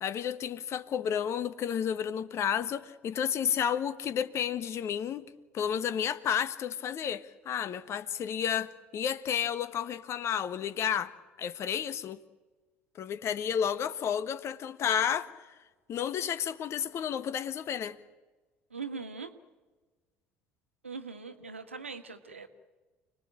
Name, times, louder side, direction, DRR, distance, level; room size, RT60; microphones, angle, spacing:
voice 1, 0.0-5.3 5.5-11.1 11.4-12.2 13.0-15.3 15.9-18.0, left 8 dB, 45° left, 1.5 m, -31 dB
voice 2, 18.7-19.3 20.8-22.5, right 4 dB, 80° right, 1.7 m, -41 dB
29.5 x 20.0 x 8.9 m
figure-of-eight pair, 60°, 7 cm